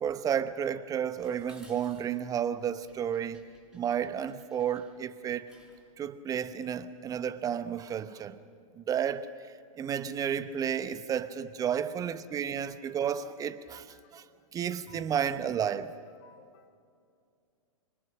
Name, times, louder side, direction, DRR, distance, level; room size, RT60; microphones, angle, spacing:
voice 1, 0.0-3.4 3.7-5.5 6.0-8.4 8.8-9.3 9.8-13.9 14.1-14.2 14.5-15.9, right 8 dB, 20° right, 0.9 m, -32 dB
Dishes pots and pans, 1.2-5.9, right 1 dB, ahead, 6.1 m, -60 dB
voice 2, 12.1-12.8 13.6-15.5 16.1-16.7, left 7 dB, 40° left, 2.1 m, -61 dB
26.0 x 25.0 x 6.3 m
figure-of-eight pair, 110°, 18 cm